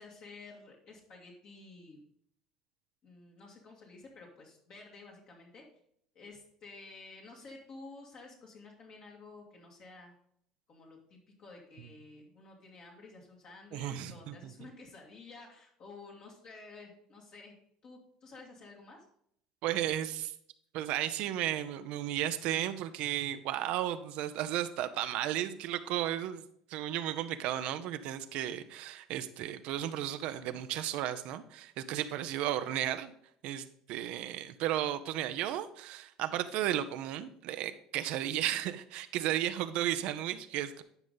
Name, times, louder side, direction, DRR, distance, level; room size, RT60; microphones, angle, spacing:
voice 1, 0.0-2.0 3.0-5.6 6.1-10.1 10.7-17.5 17.8-19.0, left 3 dB, 55° left, -2 dB, 2.1 m, -52 dB
voice 2, 13.7-14.5 19.6-20.3 20.7-26.4 26.7-33.1 33.4-40.8, right 12 dB, 65° right, 11 dB, 0.6 m, -34 dB
11.0 x 5.2 x 3.9 m, 0.69 s
hypercardioid pair, 75°, 2 cm